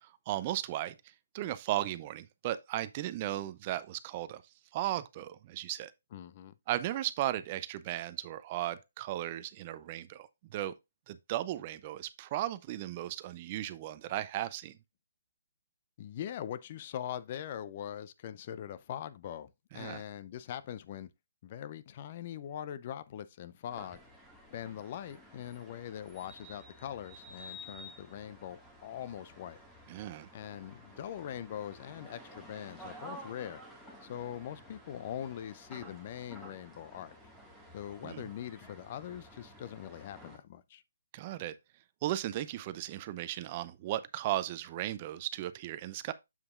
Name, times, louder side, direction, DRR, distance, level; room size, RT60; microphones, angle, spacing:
voice 1, 0.3-1.0 1.3-4.4 4.7-5.9 6.7-10.7 11.1-14.8 19.7-20.0 29.9-30.3 38.0-38.2 41.1-41.6 42.0-46.1, right 14 dB, 35° right, 0.5 m, -36 dB
voice 2, 6.1-6.5 16.0-19.5 19.7-21.1 21.4-24.0 24.5-29.6 30.3-33.6 34.0-37.2 37.7-40.8, left 10 dB, 40° left, 0.5 m, -42 dB
sound 1, 23.7-40.4, equal, 5° left, 1.7 m, -52 dB
7.4 x 6.8 x 2.4 m
figure-of-eight pair, 145°, 0 cm